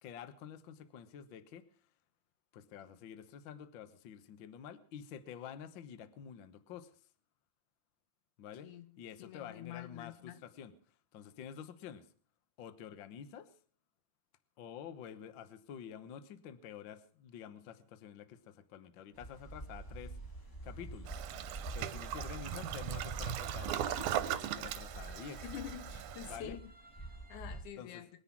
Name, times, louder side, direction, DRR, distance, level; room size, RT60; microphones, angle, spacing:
voice 1, 0.0-1.6 2.5-6.9 8.4-8.7 9.0-10.7 11.1-12.0 12.6-13.5 14.6-20.1 20.6-21.2 21.7-25.4 26.2-26.6 27.8-28.0, left 8 dB, 60° left, 1.2 m, -49 dB
voice 2, 8.6-8.9 9.2-10.4 25.4-26.7 27.3-28.1, left 10 dB, 85° left, 2.5 m, -47 dB
sound 1, 19.2-27.6, right 2 dB, 10° left, 1.0 m, -46 dB
Toilet flush, 21.1-26.4, right 11 dB, 80° right, 2.3 m, -39 dB
21.5 x 9.9 x 5.9 m
omnidirectional pair, 3.5 m